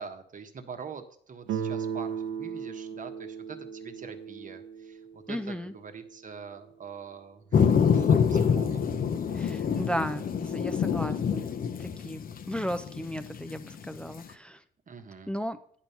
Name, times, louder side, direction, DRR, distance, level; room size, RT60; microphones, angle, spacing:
voice 1, 0.0-10.0 14.9-15.3, right 5 dB, 40° right, 7 dB, 1.1 m, -44 dB
Guitar, 1.5-6.3, right 7 dB, 75° right, 0.7 m, -37 dB
voice 2, 5.3-5.7 9.3-14.6 15.3-15.6, equal, 5° left, 10 dB, 0.4 m, -35 dB
sound 1, 7.5-14.2, left 7 dB, 45° left, 0.7 m, -26 dB
9.1 x 4.5 x 5.6 m, 0.62 s
supercardioid pair, 70°, 20 cm